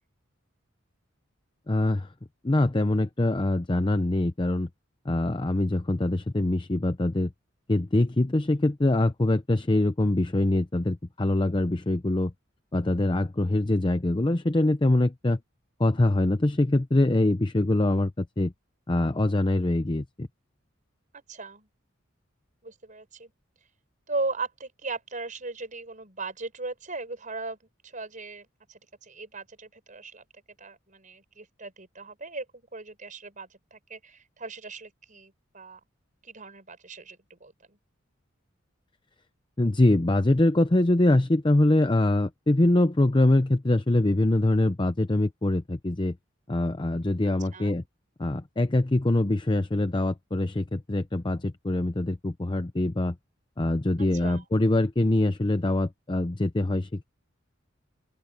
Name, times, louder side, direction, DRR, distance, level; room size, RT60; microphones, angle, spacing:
voice 1, 1.7-2.1 2.4-4.7 5.1-7.3 7.7-12.3 12.7-15.4 15.8-18.5 18.9-20.3 39.6-46.2 46.5-47.8 48.2-53.1 53.6-57.0, left 1 dB, 25° left, 0.6 m, -24 dB
voice 2, 21.1-21.7 22.6-23.3 24.1-27.6 27.8-30.2 30.6-35.8 36.2-37.8 47.5-47.8 54.0-54.5, right 3 dB, 40° right, 5.6 m, -38 dB
open air
head